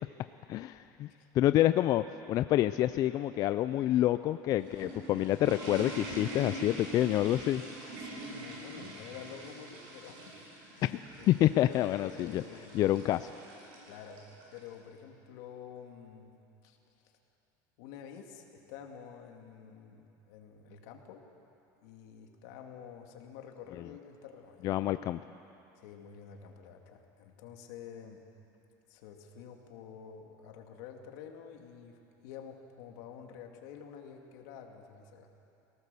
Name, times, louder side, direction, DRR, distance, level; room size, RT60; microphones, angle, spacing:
voice 1, 0.5-1.1 1.3-7.6 11.3-12.4 12.7-13.3 24.6-25.2, left 13 dB, 40° left, 12 dB, 0.4 m, -27 dB
sound 1, 4.4-14.7, right 1 dB, 65° right, 6.6 m, -44 dB
voice 2, 7.8-10.4 10.7-11.5 11.8-13.0 13.9-16.4 16.6-16.8 17.8-21.2 21.8-24.8 25.8-28.2 28.9-32.0 32.2-35.3, left 7 dB, 75° left, 3 dB, 2.3 m, -49 dB
24.0 x 18.0 x 6.9 m, 2.9 s
cardioid pair, 150°, 9 cm